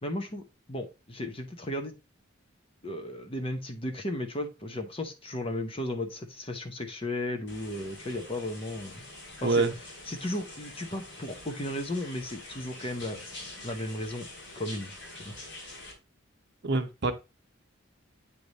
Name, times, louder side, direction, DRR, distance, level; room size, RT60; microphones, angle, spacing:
voice 1, 0.0-1.9 2.8-9.0 9.4-9.7 10.1-13.2 13.6-14.3 14.6-15.3, left 1 dB, 30° left, 0.8 m, -35 dB
sound 1, 7.5-15.9, left 2 dB, 60° left, 2.8 m, -45 dB
voice 2, 9.4-9.7 16.6-17.1, right 3 dB, 55° right, 0.8 m, -25 dB
8.6 x 3.3 x 4.0 m
head